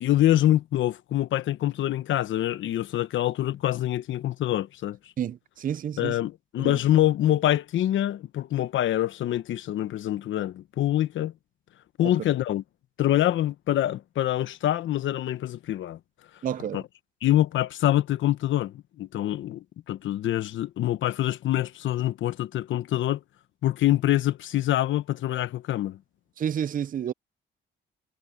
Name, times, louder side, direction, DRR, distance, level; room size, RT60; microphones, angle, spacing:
voice 1, 0.0-5.0 6.0-11.3 12.0-12.6 13.0-16.0 16.7-16.8 17.2-23.2 23.6-26.0, left 13 dB, 75° left, 1.1 m, -25 dB
voice 2, 5.2-6.2 6.6-6.8 12.0-12.1 16.4-16.8 26.4-27.1, right 9 dB, 45° right, 0.6 m, -30 dB
cardioid pair, 90°, 20 cm